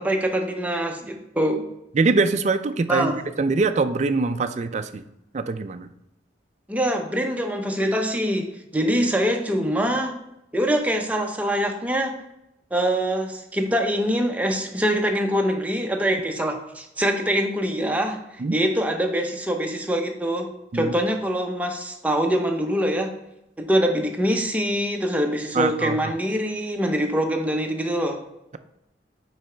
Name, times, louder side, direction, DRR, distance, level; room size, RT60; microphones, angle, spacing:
voice 1, 0.0-1.6 2.9-3.3 6.7-10.2 10.5-12.2 12.7-18.2 18.5-23.1 23.6-28.2, equal, 10° right, 3 dB, 0.7 m, -24 dB
voice 2, 1.9-3.1 3.4-5.0 5.3-5.9 18.4-18.5 20.7-20.9 25.5-26.1, right 3 dB, 40° right, 10 dB, 0.4 m, -23 dB
5.3 x 4.8 x 4.4 m, 0.83 s
head